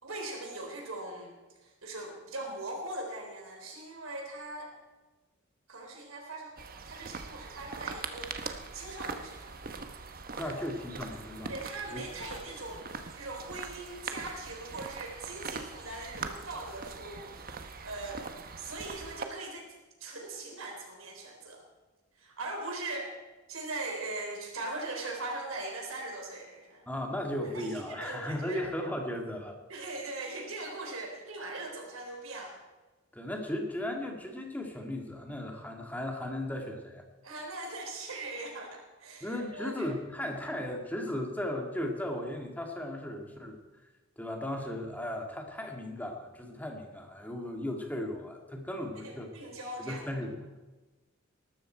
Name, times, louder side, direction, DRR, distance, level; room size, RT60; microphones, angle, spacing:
voice 1, 0.0-1.3 1.6-4.7 5.7-8.3 8.7-9.6 10.4-10.7 11.5-18.3 18.6-19.7 20.0-21.6 22.1-23.1 23.5-26.9 27.4-28.6 29.7-32.6 37.2-39.9 49.0-50.1, right 2 dB, 90° right, 1 dB, 3.9 m, -40 dB
sound 1, 6.6-19.2, right 4 dB, 45° right, 1.1 m, -42 dB
voice 2, 10.4-11.6 11.9-12.1 26.9-29.5 33.1-37.0 39.2-43.6 44.2-49.3 49.8-50.4, left 1 dB, 10° left, 2 dB, 2.1 m, -36 dB
19.5 x 13.0 x 4.5 m, 1.2 s
head